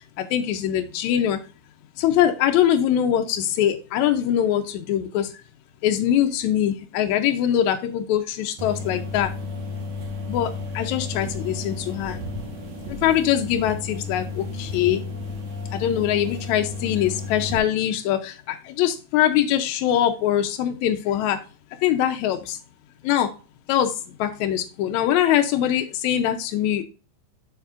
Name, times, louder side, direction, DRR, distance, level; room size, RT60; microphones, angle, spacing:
voice 1, 0.2-1.4 2.0-5.3 5.8-9.3 10.3-12.2 13.0-15.0 15.7-21.4 21.8-22.6 23.0-23.3 23.7-26.8, left 10 dB, 80° left, 6 dB, 1.6 m, -22 dB
sound 1, 8.6-17.6, left 3 dB, 65° right, 2.5 m, -33 dB
7.0 x 6.8 x 2.4 m, 0.34 s
omnidirectional pair, 4.0 m